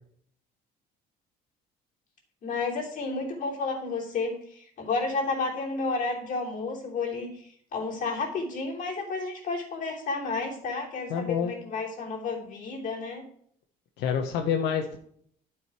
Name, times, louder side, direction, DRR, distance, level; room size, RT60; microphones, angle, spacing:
voice 1, 2.4-13.3, left 3 dB, 50° left, -2 dB, 3.1 m, -31 dB
voice 2, 11.1-11.5 14.0-15.0, left 7 dB, 85° left, 4 dB, 1.0 m, -27 dB
11.0 x 4.9 x 4.7 m, 0.66 s
cardioid pair, 110°, 17 cm